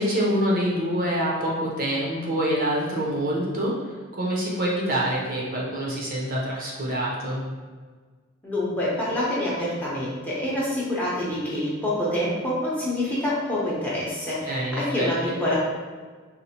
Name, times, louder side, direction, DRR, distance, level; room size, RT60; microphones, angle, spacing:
voice 1, 0.0-3.7 4.2-7.4 14.4-15.3, right 1 dB, 45° right, -4 dB, 0.6 m, -26 dB
voice 2, 8.4-15.6, left 1 dB, 10° left, -7 dB, 0.7 m, -26 dB
4.1 x 2.1 x 2.8 m, 1.5 s
head